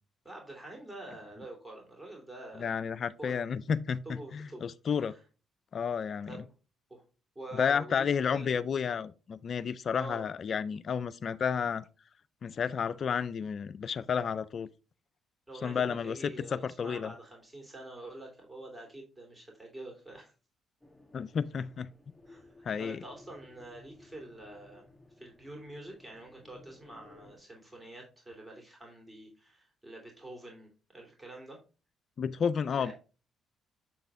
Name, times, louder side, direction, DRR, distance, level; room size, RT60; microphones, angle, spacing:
voice 1, 0.2-2.7 3.2-3.4 4.0-4.6 5.0-5.2 6.3-6.5 6.9-7.0 7.3-8.7 9.9-10.2 15.5-20.3 22.2-22.5 22.8-24.9 25.2-31.6 32.8-32.9, right 1 dB, 15° right, 2.7 m, -46 dB
voice 2, 2.6-5.1 5.7-6.4 7.5-11.8 12.4-14.7 15.6-17.1 21.1-21.9 22.7-23.0 32.2-32.9, left 7 dB, 55° left, 0.3 m, -31 dB
sound 1, 20.8-27.4, left 2 dB, 5° left, 1.3 m, -57 dB
7.3 x 3.9 x 3.5 m
supercardioid pair, 55°, 0 cm